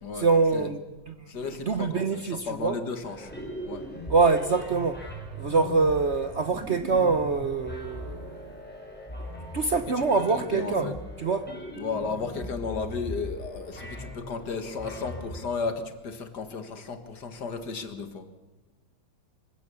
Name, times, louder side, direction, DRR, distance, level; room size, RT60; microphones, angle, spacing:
voice 1, 0.2-0.8 1.1-1.2 1.5-2.8 4.1-5.0 5.4-8.5 9.5-10.9 11.2-11.5, right 4 dB, 50° right, 1.0 m, -25 dB
voice 2, 1.3-3.3 3.7-3.9 9.7-10.9 11.8-18.3, left 4 dB, 60° left, 2.2 m, -34 dB
sound 1, 3.0-15.4, left 1 dB, 5° left, 4.4 m, -39 dB
24.5 x 16.0 x 7.0 m
omnidirectional pair, 2.0 m